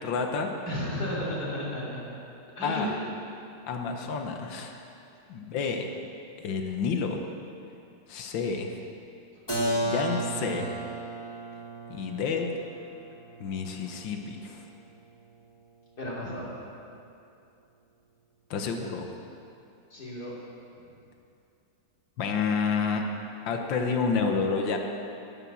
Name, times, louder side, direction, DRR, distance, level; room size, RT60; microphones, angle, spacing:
voice 1, 0.0-0.5 2.6-2.9 3.7-4.8 5.3-5.9 6.4-7.2 8.1-8.7 9.7-10.8 11.9-12.5 13.4-14.7 18.5-19.1 22.2-23.0 23.5-24.8, left 5 dB, 80° left, 4 dB, 1.8 m, -29 dB
voice 2, 0.7-2.0 2.6-2.9 16.0-16.5 19.9-20.3, equal, 55° left, -7 dB, 3.8 m, -33 dB
Keyboard (musical), 9.5-15.1, right 1 dB, 10° left, 2.2 m, -34 dB
17.0 x 7.1 x 7.2 m, 2.6 s
omnidirectional pair, 2.0 m